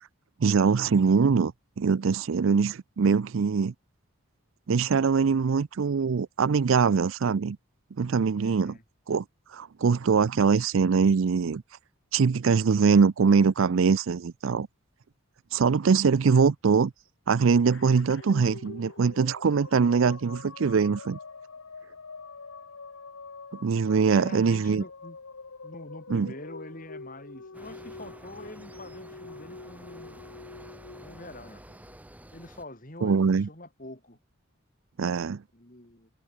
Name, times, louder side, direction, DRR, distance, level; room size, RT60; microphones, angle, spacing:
voice 1, 0.4-3.7 4.7-7.6 8.0-8.8 9.1-9.2 9.5-11.6 12.1-14.7 15.5-16.9 17.3-21.2 23.6-24.8 26.1-26.3 33.0-33.5 35.0-35.4, right 5 dB, 70° right, 0.5 m, -23 dB
voice 2, 8.4-8.8 24.1-25.2 25.6-30.2 31.0-31.6 32.3-34.2 35.5-36.1, left 1 dB, 40° left, 4.0 m, -45 dB
Cough, 17.0-17.1 17.6-19.1 19.4-20.1, left 4 dB, 60° left, 1.6 m, -53 dB
sound 1, 17.8-32.3, left 4 dB, 80° left, 1.2 m, -45 dB
sound 2, 27.5-32.6, right 1 dB, 5° right, 1.3 m, -50 dB
head